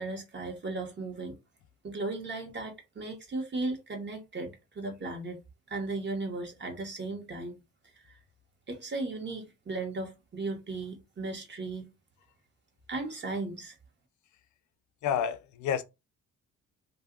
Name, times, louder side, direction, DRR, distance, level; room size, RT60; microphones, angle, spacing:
voice 1, 0.0-1.4 1.8-5.4 5.7-7.6 8.0-8.2 8.7-11.9 12.9-13.7, right 3 dB, 35° right, 1.2 m, -36 dB
voice 2, 15.0-15.8, left 8 dB, 75° left, 0.5 m, -29 dB
2.6 x 2.2 x 3.6 m
cardioid pair, 90°, 30 cm